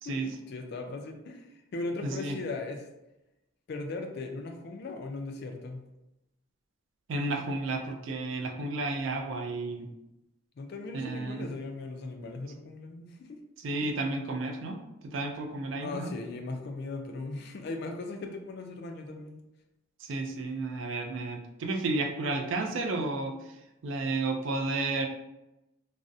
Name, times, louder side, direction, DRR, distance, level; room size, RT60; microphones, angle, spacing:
voice 1, 0.0-2.9 3.7-5.8 10.6-13.4 15.8-19.4, left 3 dB, 50° left, 4 dB, 0.3 m, -38 dB
voice 2, 2.0-2.4 7.1-9.9 10.9-11.5 13.6-16.1 20.0-23.3 23.8-25.1, right 2 dB, 65° right, 4 dB, 0.3 m, -32 dB
2.4 x 2.0 x 2.6 m, 0.92 s
head